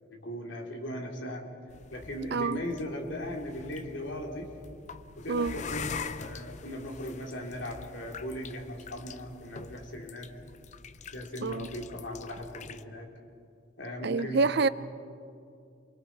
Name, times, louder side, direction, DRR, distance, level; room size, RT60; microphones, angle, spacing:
voice 1, 0.1-1.5 1.9-4.5 5.2-5.9 6.2-10.3 11.1-13.1 13.8-14.7, equal, 70° left, 3.3 m, -38 dB
sound 1, 1.7-12.8, left 5 dB, 35° left, 0.6 m, -44 dB
voice 2, 2.3-2.6 5.3-5.6 11.4-11.7 14.0-14.7, right 4 dB, 55° right, 0.6 m, -27 dB
28.5 x 23.0 x 4.7 m
head